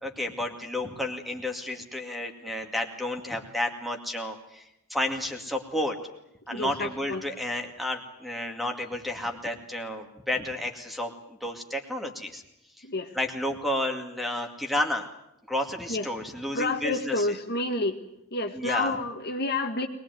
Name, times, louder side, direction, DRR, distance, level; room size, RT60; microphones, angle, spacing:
voice 1, 0.0-4.6 4.9-6.0 6.5-11.1 11.4-12.4 13.1-15.1 15.5-17.4 18.5-19.0, left 1 dB, ahead, 4 dB, 2.2 m, -31 dB
voice 2, 6.5-7.2 12.8-13.1 15.9-16.1 16.5-18.0 18.3-19.9, left 2 dB, 50° left, 5 dB, 1.7 m, -29 dB
23.0 x 19.5 x 9.3 m, 0.83 s
head